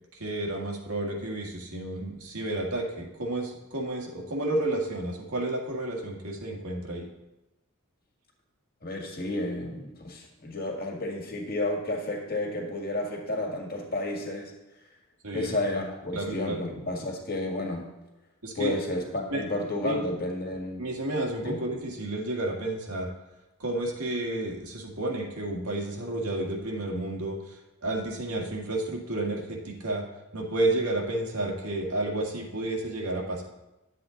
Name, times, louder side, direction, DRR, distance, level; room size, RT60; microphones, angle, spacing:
voice 1, 0.2-7.1 15.2-15.6 16.1-16.6 18.4-18.7 19.3-19.4 19.8-20.0 20.8-23.1 23.6-27.4 27.8-30.0 30.3-33.4, right 2 dB, 80° right, 0 dB, 1.8 m, -31 dB
voice 2, 8.8-14.5 15.3-17.9 18.5-20.8 21.4-21.6, left 1 dB, 40° left, 0 dB, 1.8 m, -31 dB
11.0 x 7.7 x 3.9 m, 0.97 s
head